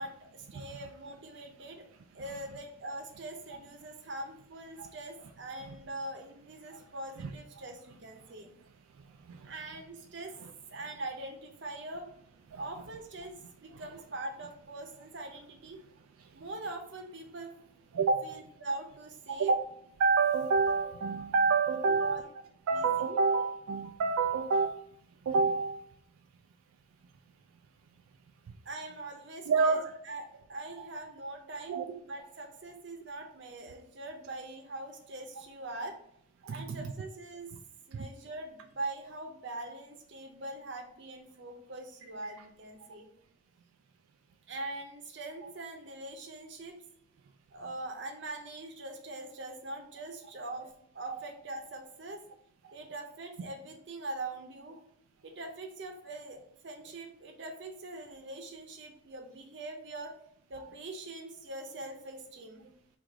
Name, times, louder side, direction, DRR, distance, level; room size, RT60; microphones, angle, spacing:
voice 1, 0.0-1.9 2.1-8.5 9.4-10.3 10.7-12.1 12.6-15.8 16.3-17.5 18.2-19.5 21.8-22.2 22.7-23.2 28.6-30.2 30.5-36.0 36.5-37.5 37.9-43.1 44.5-46.7 47.5-52.2 52.7-54.8 55.2-60.1 60.5-62.7, right 2 dB, 55° right, 0.7 m, -42 dB
voice 2, 9.0-9.5 10.4-10.5 12.5-12.6 13.7-13.8 16.2-16.4 17.9-18.4 19.3-19.7 20.0-22.2 22.7-24.8 25.2-25.8 28.5-28.6 29.5-29.9 30.8-30.9 31.7-32.0 36.4-36.9 37.9-38.1 42.2-42.3 45.4-45.5 51.1-51.2 52.6-52.7, right 4 dB, 85° right, 0.3 m, -29 dB
4.7 x 2.5 x 3.5 m
head